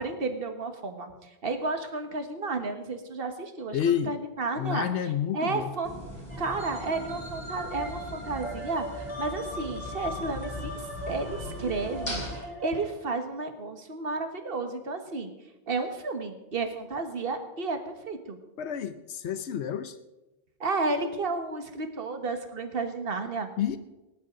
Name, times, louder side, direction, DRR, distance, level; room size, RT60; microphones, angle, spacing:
voice 1, 0.0-4.9 5.3-5.9 6.4-15.3 15.7-18.4 20.6-23.5, right 3 dB, 60° right, 6 dB, 1.6 m, -32 dB
voice 2, 3.7-4.1 4.6-5.7 18.6-20.0 23.6-23.8, left 9 dB, 90° left, 11 dB, 1.0 m, -29 dB
sound 1, 5.8-12.4, left 1 dB, 25° left, 4.5 m, -40 dB
sound 2, 6.3-12.9, right 1 dB, 10° left, 3.6 m, -39 dB
19.5 x 11.0 x 3.8 m, 1.0 s
omnidirectional pair, 1.1 m